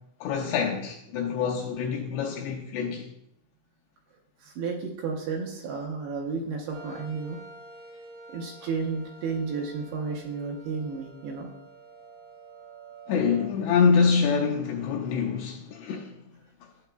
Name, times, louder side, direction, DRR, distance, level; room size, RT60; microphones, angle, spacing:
voice 1, 0.2-3.1 13.1-16.1, left 6 dB, 85° left, 2.5 m, -25 dB
voice 2, 4.4-7.4 8.3-11.5 15.9-16.0, right 4 dB, 75° right, 2.5 m, -32 dB
sound 1, 6.7-13.5, right 2 dB, 55° right, 3.5 m, -48 dB
11.5 x 7.6 x 2.2 m
omnidirectional pair, 5.4 m